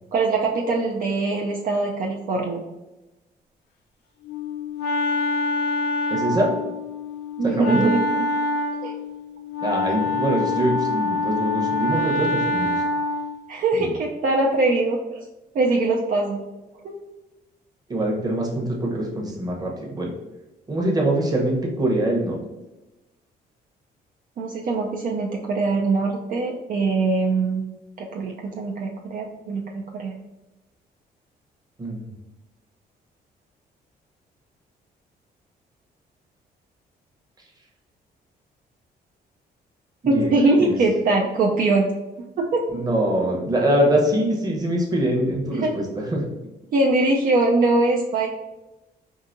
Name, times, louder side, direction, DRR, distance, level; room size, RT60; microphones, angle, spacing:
voice 1, 0.1-2.6 7.4-8.2 8.8-8.9 13.5-15.2 15.5-16.4 16.8-16.9 24.4-27.6 28.0-30.1 40.1-41.9 42.4-42.6 45.5-45.7 46.7-48.3, right 3 dB, 55° right, 0 dB, 0.5 m, -22 dB
Wind instrument woodwind instrument, 4.3-13.4, left 2 dB, 75° left, 0.6 m, -25 dB
voice 2, 6.1-6.5 7.4-7.9 9.6-12.8 13.7-13.9 17.9-20.1 20.7-22.4 31.8-32.1 40.0-40.3 40.6-40.8 42.7-46.2, right 1 dB, 20° right, -1 dB, 0.9 m, -23 dB
4.8 x 2.7 x 2.6 m, 1.0 s
cardioid pair, 125°, 17 cm